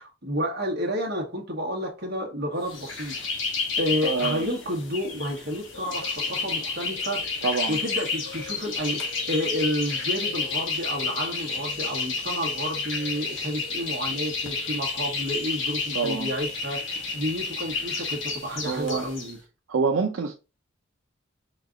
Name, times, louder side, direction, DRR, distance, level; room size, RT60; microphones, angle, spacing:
voice 1, 0.0-3.1 3.8-19.4, equal, 55° right, 1.4 m, -30 dB
sound 1, 2.7-19.3, left 4 dB, 65° left, 1.2 m, -31 dB
voice 2, 4.0-4.5 7.4-7.8 15.9-16.3 18.7-19.0 19.7-20.3, right 4 dB, 85° right, 0.5 m, -26 dB
4.5 x 2.4 x 3.8 m
head